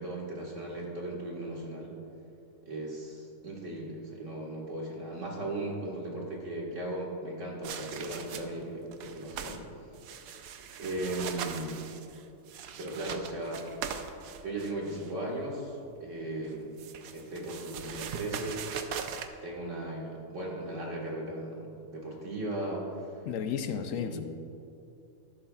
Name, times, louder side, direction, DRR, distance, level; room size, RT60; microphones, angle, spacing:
voice 1, 0.0-1.9 2.6-9.6 10.8-11.8 12.8-13.7 14.4-16.8 17.1-18.6 19.4-23.2 23.9-24.2, right 1 dB, 60° right, -2 dB, 2.1 m, -37 dB
sound 1, 7.6-8.6 8.9-9.6 9.9-15.1 16.4-19.3, right 7 dB, 85° right, 1.1 m, -40 dB
voice 2, 23.3-24.2, left 7 dB, 75° left, 8 dB, 0.9 m, -33 dB
13.0 x 11.0 x 2.4 m, 2.6 s
omnidirectional pair, 1.4 m